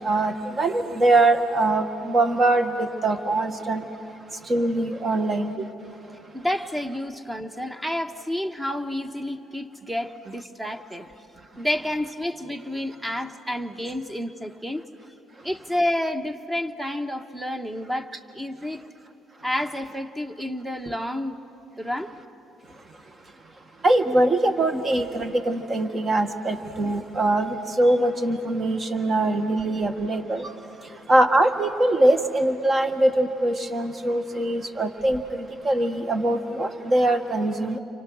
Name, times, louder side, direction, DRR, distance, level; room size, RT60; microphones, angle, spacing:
voice 1, 0.0-3.8 4.5-5.6 23.8-30.5 31.1-37.8, right 2 dB, 35° right, 7 dB, 1.7 m, -22 dB
voice 2, 6.3-11.1 11.6-14.9 15.4-18.8 19.4-21.4 21.8-22.1, left 1 dB, 10° right, 8 dB, 1.3 m, -29 dB
30.0 x 25.0 x 6.3 m, 2.8 s
supercardioid pair, 80°, 0 cm